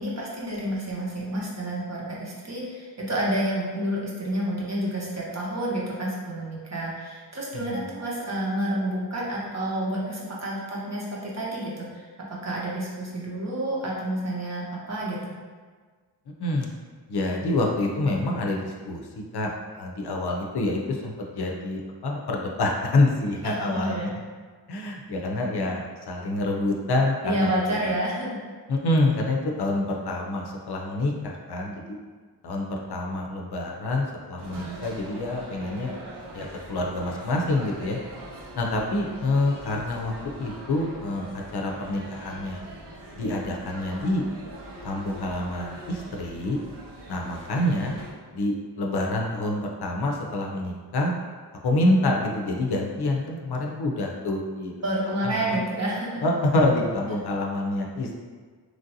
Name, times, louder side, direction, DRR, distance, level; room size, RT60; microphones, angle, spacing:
voice 1, 0.0-15.3 23.4-24.1 27.2-28.3 54.8-56.2, right 1 dB, 40° right, -5 dB, 0.8 m, -29 dB
voice 2, 7.5-7.9 16.4-16.7 17.1-19.1 19.3-19.5 19.8-24.1 24.7-27.6 27.9-28.0 28.7-32.0 32.4-36.0 36.3-38.0 38.6-40.1 40.4-42.6 43.2-44.2 44.8-46.6 47.1-48.0 48.3-51.1 51.6-55.0 55.2-55.6 56.2-58.2, left 2 dB, 65° left, 0 dB, 0.5 m, -27 dB
sound 1, 34.4-48.1, right 1 dB, 75° right, 0.6 m, -42 dB
3.1 x 2.6 x 2.7 m, 1.5 s
wide cardioid pair, 75°, 41 cm